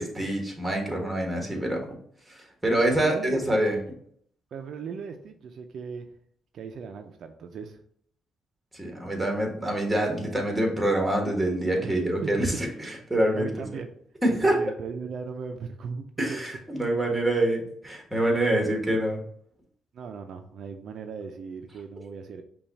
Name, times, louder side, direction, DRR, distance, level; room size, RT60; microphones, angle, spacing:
voice 1, 0.0-1.9 2.3-3.8 8.7-13.5 14.2-14.6 16.2-19.2, right 1 dB, 5° right, 1 dB, 1.4 m, -26 dB
voice 2, 2.7-3.5 4.5-6.1 6.5-7.8 11.8-12.6 13.3-13.9 14.3-16.4 18.4-18.8 19.9-22.4, right 5 dB, 65° right, 5 dB, 0.4 m, -38 dB
5.5 x 2.3 x 4.0 m, 0.64 s
cardioid pair, 90°, 0 cm